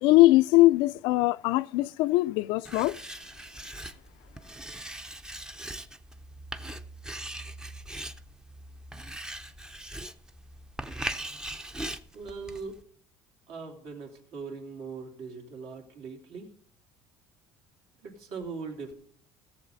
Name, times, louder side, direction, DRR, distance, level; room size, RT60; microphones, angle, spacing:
voice 1, 0.0-3.0, left 19 dB, 70° left, 0.4 m, -21 dB
Writing, 2.7-12.8, right 1 dB, 10° right, 0.5 m, -40 dB
voice 2, 12.1-12.8 13.5-16.5 18.0-18.9, right 4 dB, 70° right, 2.9 m, -40 dB
16.5 x 7.1 x 4.1 m
cardioid pair, 125°, 9 cm